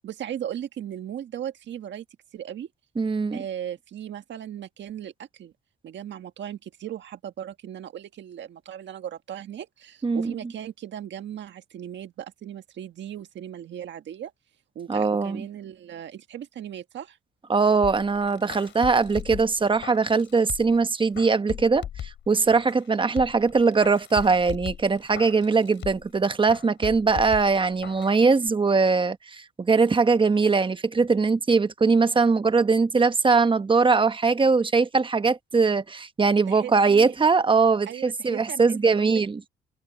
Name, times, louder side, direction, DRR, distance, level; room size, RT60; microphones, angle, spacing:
voice 1, 0.0-2.0 2.3-2.7 3.3-5.5 5.8-14.3 14.7-17.2 36.5-37.2 37.9-39.2, right 10 dB, 65° right, 1.7 m, -37 dB
voice 2, 3.0-3.4 10.0-10.3 14.9-15.4 17.5-39.4, right 4 dB, 25° right, 1.1 m, -21 dB
sound 1, 17.8-20.8 21.2-22.9 23.2-26.2 26.5-28.2 28.5-28.6, left 10 dB, 70° left, 4.4 m, -39 dB
cardioid pair, 90°, 20 cm